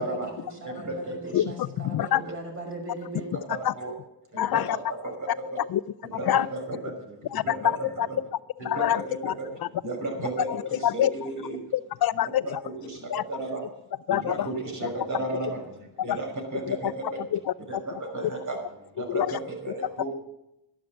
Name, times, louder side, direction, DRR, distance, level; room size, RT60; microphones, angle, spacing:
voice 1, 0.0-3.3, right 2 dB, 30° right, 1 dB, 5.7 m, -39 dB
voice 2, 0.6-1.4 3.5-3.9 4.3-5.6 6.1-8.0 8.6-9.5 9.8-11.6 12.4-13.7 14.1-17.2 17.7-20.1, right 2 dB, 45° right, 2 dB, 5.7 m, -34 dB
voice 3, 1.3-2.2 3.6-3.7 4.3-4.8 5.7-5.8 6.3-6.5 7.3-8.1 8.6-9.3 9.6-9.7 10.5-11.1 11.7-12.6 13.1-13.2 14.1-14.5 16.0-16.2 16.7-16.9 17.3-17.8 19.1-19.3, left 11 dB, 60° left, 17 dB, 0.5 m, -26 dB
12.0 x 11.5 x 7.5 m, 0.87 s
cardioid pair, 105°, 41 cm